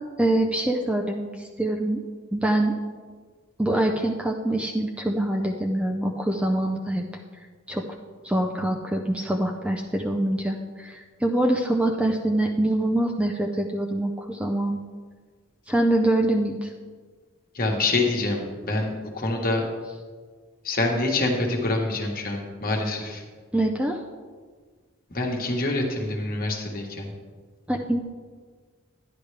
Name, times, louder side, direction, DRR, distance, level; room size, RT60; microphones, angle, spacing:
voice 1, 0.0-2.0 2.3-2.7 3.6-7.0 7.7-7.8 8.2-14.8 15.7-16.7 23.5-24.0 27.7-28.0, right 1 dB, 5° right, 1 dB, 0.5 m, -24 dB
voice 2, 17.5-19.7 20.6-23.2 25.1-27.1, left 2 dB, 40° left, 1 dB, 1.4 m, -26 dB
11.0 x 10.5 x 3.3 m, 1.5 s
head